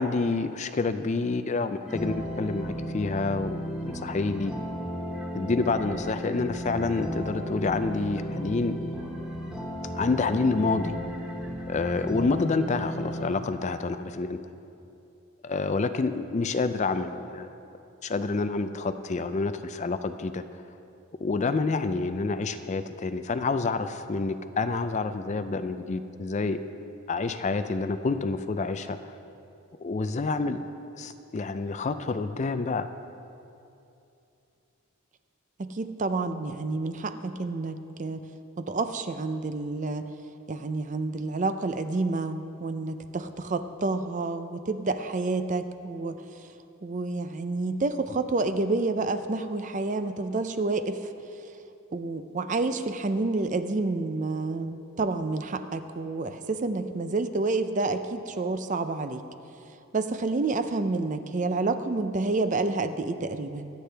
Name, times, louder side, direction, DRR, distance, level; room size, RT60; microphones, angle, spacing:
voice 1, 0.0-4.5 5.3-8.8 9.9-11.0 11.7-14.4 15.4-17.5 18.0-20.4 21.2-26.6 27.1-29.1 29.8-30.6 31.0-32.9, left 3 dB, 30° left, 10 dB, 0.4 m, -28 dB
sound 1, 1.9-13.3, equal, 5° right, 1.1 m, -34 dB
voice 2, 35.6-38.3 38.6-40.1 40.5-46.2 46.8-51.0 51.9-59.2 59.9-63.7, right 3 dB, 35° right, 10 dB, 0.5 m, -29 dB
24.0 x 8.3 x 3.4 m, 2.7 s
head